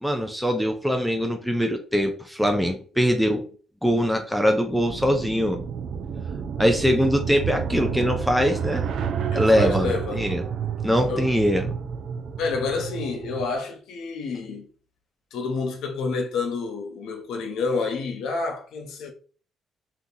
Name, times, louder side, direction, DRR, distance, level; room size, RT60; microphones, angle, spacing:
voice 1, 0.0-3.4 3.8-5.6 6.6-8.8 9.3-10.4 10.8-11.7, equal, ahead, 0.5 m, -22 dB
voice 2, 2.9-3.4 6.6-7.0 9.3-10.3 11.1-11.3 12.4-14.7 15.3-19.1, left 4 dB, 85° left, 0.7 m, -29 dB
sound 1, 4.7-13.5, right 7 dB, 70° right, 0.4 m, -30 dB
2.9 x 2.4 x 3.7 m
cardioid pair, 90°, 0 cm